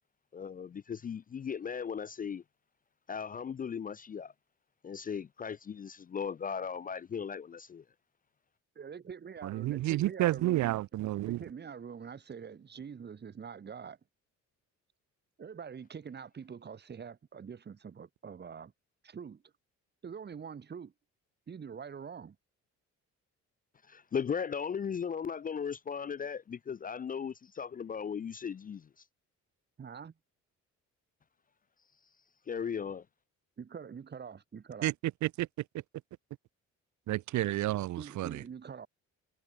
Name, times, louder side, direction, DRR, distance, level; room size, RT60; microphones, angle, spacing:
voice 1, 0.3-2.4 3.1-4.3 4.8-7.8 23.9-28.8 32.5-33.0, left 7 dB, 30° left, 0.4 m, -37 dB
voice 2, 8.7-10.8 11.3-14.0 15.4-18.7 19.0-19.4 20.0-20.9 21.5-22.4 29.8-30.1 33.6-34.9 38.0-38.9, right 6 dB, 35° right, 1.1 m, -45 dB
voice 3, 9.4-11.4 34.8-34.9 35.2-35.5 37.1-38.4, right 16 dB, 70° right, 0.6 m, -30 dB
cardioid pair, 90°, 30 cm